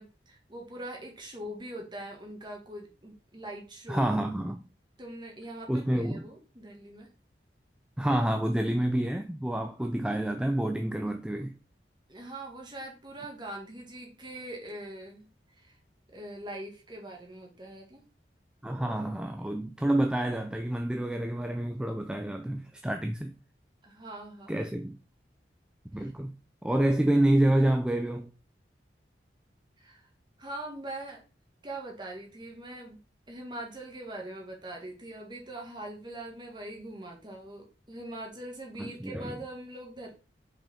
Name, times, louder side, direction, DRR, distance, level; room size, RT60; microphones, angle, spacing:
voice 1, 0.0-4.1 5.0-7.1 12.1-15.8 16.1-18.0 23.8-24.6 26.0-26.1 29.8-30.1 30.4-31.2 31.6-33.0 33.3-40.1, right 1 dB, 25° right, 1.6 m, -42 dB
voice 2, 3.9-4.6 5.7-6.3 8.0-11.5 18.6-23.3 24.5-25.0 25.9-26.3 26.6-28.3 38.8-39.3, right 1 dB, 5° right, 0.3 m, -28 dB
5.2 x 5.1 x 3.6 m
head